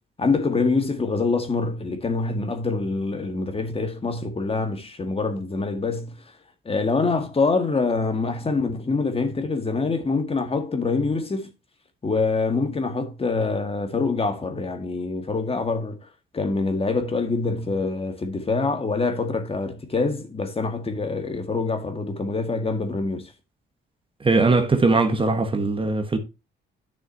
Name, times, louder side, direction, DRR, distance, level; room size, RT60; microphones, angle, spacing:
voice 1, 0.2-6.2 6.7-11.5 12.0-16.1 16.3-23.3, left 3 dB, 30° left, 1.8 m, -25 dB
voice 2, 24.2-26.2, right 3 dB, 25° right, 1.3 m, -20 dB
10.5 x 6.3 x 2.8 m
cardioid pair, 90°, 20 cm